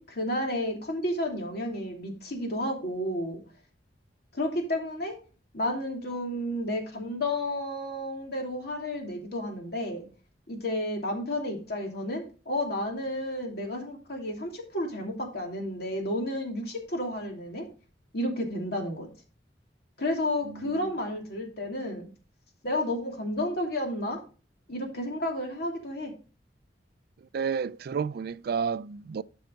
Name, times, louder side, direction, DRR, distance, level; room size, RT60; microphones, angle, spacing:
voice 1, 0.0-3.4 4.3-5.2 5.5-10.1 10.5-17.7 18.1-19.1 20.0-22.1 22.6-24.2 24.7-26.1, left 1 dB, 60° left, 2.8 m, -31 dB
voice 2, 20.4-20.9 27.3-29.2, right 6 dB, 60° right, 0.3 m, -31 dB
12.0 x 5.6 x 3.9 m
head